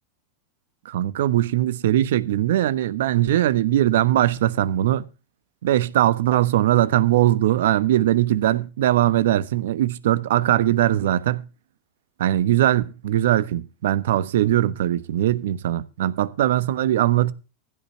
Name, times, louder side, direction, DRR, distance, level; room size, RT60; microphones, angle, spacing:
voice 1, 0.8-5.0 5.6-11.4 12.2-17.3, right 13 dB, 75° right, 1.1 m, -20 dB
15.0 x 5.7 x 7.5 m
hypercardioid pair, 100°, 0 cm